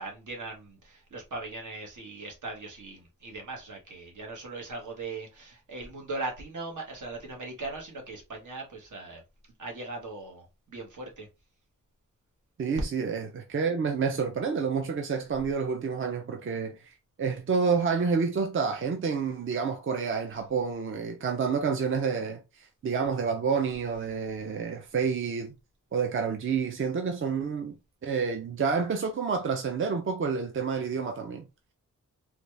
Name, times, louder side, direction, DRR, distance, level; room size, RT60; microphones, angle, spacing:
voice 1, 0.0-9.2 9.6-11.3, right 3 dB, 70° right, 1.3 m, -39 dB
voice 2, 12.6-25.5 25.9-27.7 28.0-31.5, right 5 dB, 40° right, 0.5 m, -29 dB
4.0 x 2.2 x 3.2 m
wide cardioid pair, 165°, 32 cm